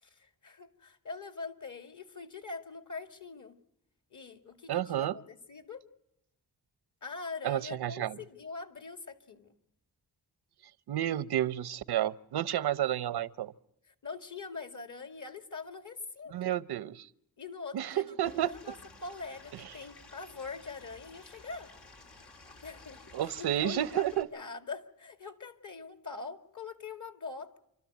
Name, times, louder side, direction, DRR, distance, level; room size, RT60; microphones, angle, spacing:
voice 1, 0.0-3.6 4.1-5.8 7.0-9.5 13.9-16.5 17.4-18.8 19.0-21.7 22.6-27.6, left 4 dB, 50° left, 2.2 m, -43 dB
voice 2, 4.7-5.2 7.4-8.2 10.9-13.5 16.3-17.1 17.7-18.5 23.1-24.3, right 12 dB, 85° right, 0.8 m, -31 dB
Stream / Liquid, 18.2-24.2, left 3 dB, 80° left, 3.6 m, -54 dB
28.0 x 13.0 x 9.3 m
cardioid pair, 65°, 38 cm